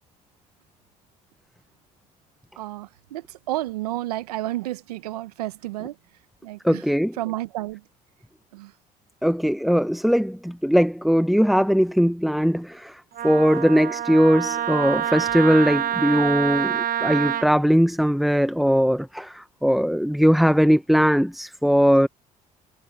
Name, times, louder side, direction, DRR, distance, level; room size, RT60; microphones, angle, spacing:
voice 1, 2.6-6.0 6.4-6.8 7.2-7.8 8.5-8.7, right 16 dB, 85° right, 1.2 m, -31 dB
voice 2, 6.6-7.2 9.2-22.1, equal, ahead, 0.8 m, -20 dB
Wind instrument woodwind instrument, 13.2-17.5, right 10 dB, 45° right, 0.9 m, -26 dB
hypercardioid pair, 65°, 19 cm